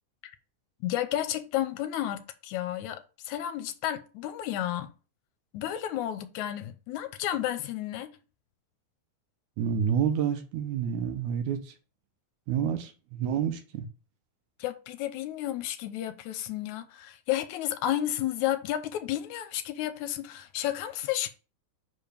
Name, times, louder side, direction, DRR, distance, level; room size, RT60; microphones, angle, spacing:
voice 1, 0.8-4.9 5.5-8.1 14.6-21.3, left 12 dB, 80° left, 2.0 m, -32 dB
voice 2, 9.6-11.7 12.5-13.9, right 8 dB, 75° right, 2.3 m, -29 dB
5.3 x 4.9 x 5.0 m
omnidirectional pair, 3.5 m